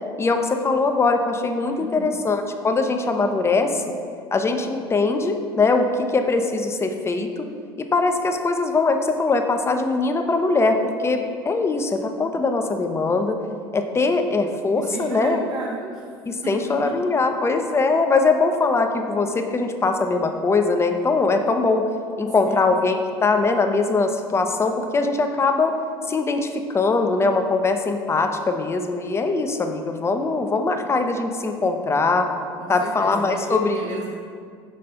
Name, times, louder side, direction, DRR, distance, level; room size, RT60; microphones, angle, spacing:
voice 1, 0.2-3.8 4.3-7.4 7.8-13.4 13.7-15.4 16.3-21.9 22.2-25.7 26.1-32.3 32.7-33.8, left 3 dB, 20° left, 5 dB, 0.6 m, -21 dB
voice 2, 1.8-2.2 14.8-16.2 16.4-17.4 22.5-22.6 32.6-34.1, right 3 dB, 35° right, -2 dB, 0.8 m, -34 dB
5.2 x 4.2 x 5.5 m, 2.2 s
hypercardioid pair, 70°, 12 cm